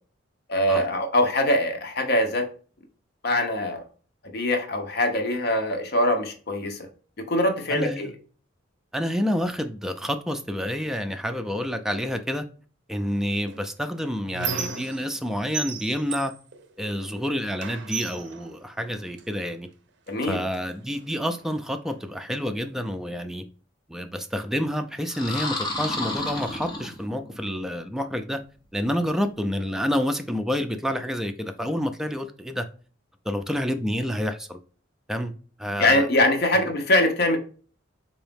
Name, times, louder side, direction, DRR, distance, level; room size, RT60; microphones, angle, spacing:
voice 1, 0.5-2.5 3.2-3.8 4.3-6.8 7.2-8.1 20.1-20.4 35.8-37.4, left 1 dB, 55° left, 0.8 m, -23 dB
voice 2, 7.7-8.1 8.9-12.5 12.9-16.3 16.8-19.7 20.2-23.4 23.9-28.4 28.7-32.7 33.3-34.6 35.1-35.3 35.6-36.1 36.5-36.6, equal, ahead, 0.3 m, -28 dB
Squeak, 13.5-15.3 15.5-17.2 17.6-19.3 20.1-20.2 20.5-21.6, right 5 dB, 65° right, 0.5 m, -35 dB
sound 1, 25.1-27.4, left 2 dB, 20° left, 0.7 m, -31 dB
3.9 x 2.7 x 3.4 m
head